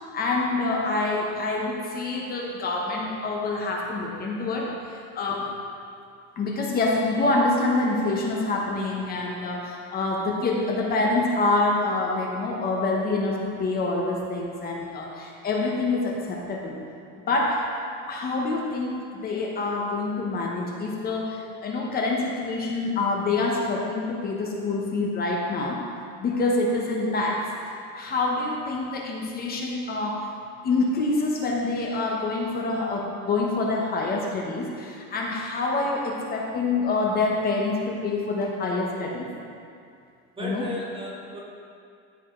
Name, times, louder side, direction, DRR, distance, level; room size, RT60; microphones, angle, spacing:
voice 1, 0.1-5.5 6.4-16.7 17.3-17.7 18.1-25.8 26.2-30.2 30.6-39.3 40.4-40.6, left 3 dB, 30° left, -1 dB, 1.0 m, -26 dB
voice 2, 40.4-41.4, equal, 15° right, -3 dB, 0.9 m, -34 dB
13.0 x 5.0 x 3.8 m, 2.4 s
cardioid pair, 170°, 31 cm